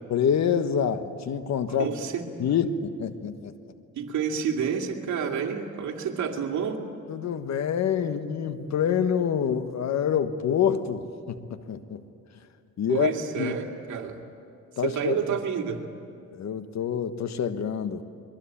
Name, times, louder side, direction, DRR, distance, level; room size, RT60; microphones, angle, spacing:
voice 1, 0.1-1.9 2.4-3.5 7.1-12.0 12.8-13.5 14.8-15.2 16.3-18.0, left 8 dB, 60° left, 10 dB, 1.4 m, -26 dB
voice 2, 1.8-2.3 2.5-2.6 4.0-6.8 12.9-14.2 14.8-15.8, right 7 dB, 70° right, 3 dB, 2.6 m, -29 dB
23.5 x 22.5 x 8.7 m, 2.5 s
cardioid pair, 90°, 30 cm